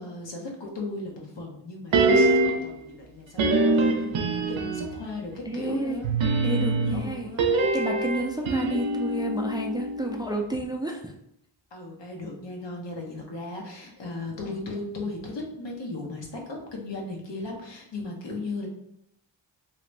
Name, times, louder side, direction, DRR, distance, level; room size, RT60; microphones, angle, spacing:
voice 1, 0.0-6.1 6.9-7.5 11.7-18.7, left 2 dB, 65° left, 0 dB, 1.0 m, -36 dB
sound 1, 1.9-2.7 3.4-5.0 6.0-10.3 10.5-10.6, right 2 dB, 75° right, 0.6 m, -24 dB
voice 2, 5.5-6.0 6.4-7.4 7.7-11.1, right 1 dB, 10° right, 1 dB, 0.4 m, -30 dB
2.9 x 2.5 x 3.1 m, 0.74 s
cardioid pair, 45°, 46 cm